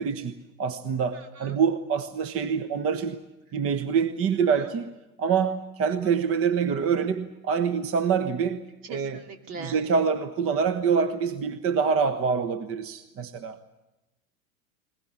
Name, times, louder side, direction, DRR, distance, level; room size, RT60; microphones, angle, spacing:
voice 1, 0.0-3.2 3.5-4.9 5.2-8.6 8.9-9.2 9.6-13.6, right 6 dB, 30° right, 11 dB, 1.2 m, -26 dB
voice 2, 1.1-1.5 4.6-4.7 8.9-9.8, right 4 dB, 65° right, 5 dB, 2.9 m, -41 dB
21.0 x 20.5 x 8.4 m, 0.97 s
figure-of-eight pair, 85°, 42 cm